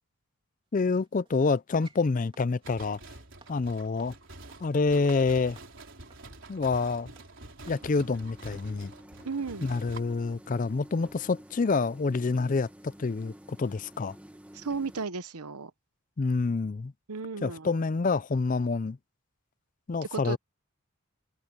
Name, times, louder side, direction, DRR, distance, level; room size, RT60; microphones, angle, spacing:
voice 1, 0.7-3.0 3.5-4.1 4.6-5.6 6.5-7.1 7.7-8.9 9.6-14.2 16.2-16.9 17.4-19.0 19.9-20.4, left 4 dB, 35° left, 0.4 m, -27 dB
sound 1, 0.8-7.9 8.4-8.5, right 3 dB, 25° right, 3.3 m, -60 dB
sound 2, 2.6-10.0, right 2 dB, 55° right, 4.4 m, -48 dB
sound 3, 7.7-15.1, right 1 dB, 5° right, 1.3 m, -51 dB
voice 2, 9.2-9.7 14.5-15.7 17.1-17.7 20.1-20.4, right 4 dB, 90° right, 1.0 m, -34 dB
head